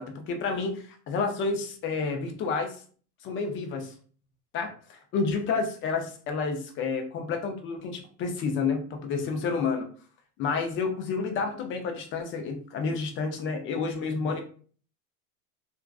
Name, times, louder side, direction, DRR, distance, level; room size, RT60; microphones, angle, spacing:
voice 1, 0.0-2.7 3.2-3.9 4.5-9.9 10.4-14.4, left 4 dB, 30° left, 4 dB, 0.3 m, -30 dB
2.4 x 2.3 x 2.2 m, 0.43 s
supercardioid pair, 115°, 49 cm